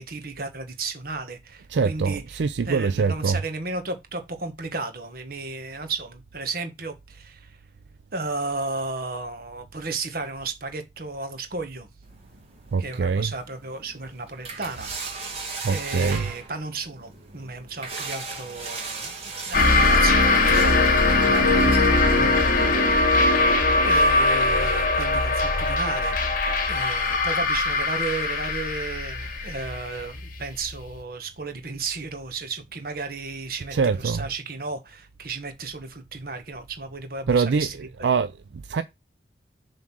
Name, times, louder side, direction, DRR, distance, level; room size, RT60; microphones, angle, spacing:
voice 1, 0.0-7.6 8.1-11.9 12.8-14.9 15.7-19.1 19.5-23.3 23.8-26.2 26.7-38.1, right 3 dB, 55° right, 1.5 m, -34 dB
voice 2, 1.7-3.4 12.7-13.3 15.6-16.3 33.7-34.3 37.3-38.8, right 5 dB, 80° right, 0.4 m, -24 dB
sound 1, 12.0-22.5, right 4 dB, 35° right, 2.3 m, -38 dB
sound 2, 19.5-30.7, left 2 dB, 50° left, 1.3 m, -21 dB
7.3 x 3.8 x 6.1 m
head